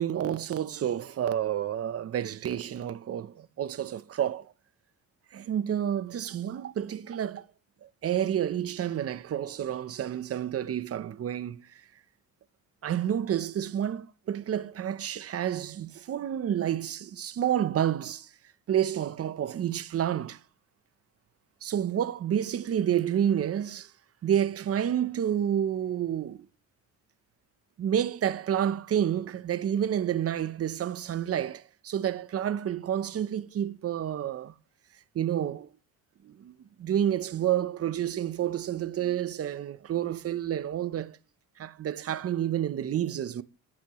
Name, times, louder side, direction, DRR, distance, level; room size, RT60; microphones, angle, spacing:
voice 1, 0.0-4.5 5.3-7.4 7.8-11.8 12.8-18.3 18.7-20.4 21.6-23.9 24.2-26.5 27.8-34.5 35.1-35.7 36.2-41.2 41.6-43.4, right 10 dB, 45° right, 0.8 m, -29 dB
15.0 x 10.5 x 3.1 m
cardioid pair, 110°, 32 cm